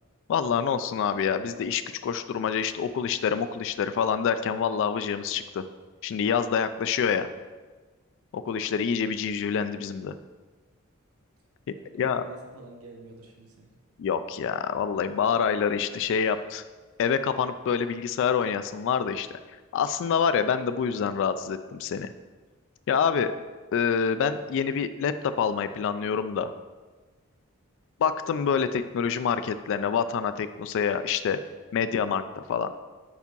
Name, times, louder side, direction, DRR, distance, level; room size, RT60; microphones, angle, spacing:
voice 1, 0.3-5.6 6.0-7.3 8.3-10.1 11.9-12.2 14.0-16.6 17.0-19.3 19.7-22.1 22.9-23.3 23.7-26.5 28.0-31.4 31.7-32.2 32.5-32.7, left 7 dB, 60° left, 11 dB, 0.3 m, -26 dB
voice 2, 11.7-13.7, right 2 dB, 85° right, 1 dB, 1.1 m, -48 dB
4.8 x 4.6 x 5.3 m, 1.3 s
head